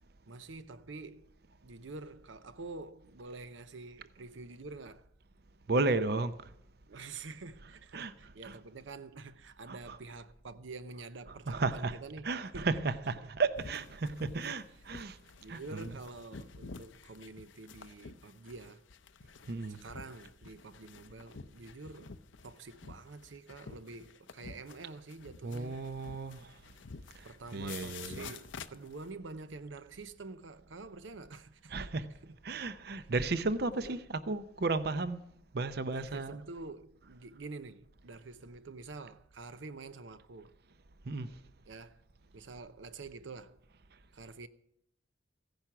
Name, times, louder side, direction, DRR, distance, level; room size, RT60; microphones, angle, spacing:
voice 1, 0.3-1.3 1.6-5.0 6.9-12.3 12.5-12.8 13.2-13.3 14.4-14.5 15.4-18.8 19.7-22.2 22.4-25.8 27.2-32.0 32.2-32.4 33.7-34.0 35.9-40.5 41.7-42.0 42.3-43.6 44.1-44.5, right 3 dB, 85° right, 0.7 m, -47 dB
voice 2, 5.7-6.5 7.0-7.1 7.9-8.1 8.4-8.6 9.7-10.0 11.5-12.0 12.2-15.2 15.5-15.9 19.5-19.8 25.4-26.6 27.1-27.3 27.5-28.3 31.7-32.0 32.4-35.2 35.5-36.4 41.1-41.4, right 3 dB, 55° right, 0.6 m, -34 dB
sound 1, 13.5-29.1, left 5 dB, 85° left, 0.7 m, -50 dB
15.5 x 10.5 x 5.9 m
head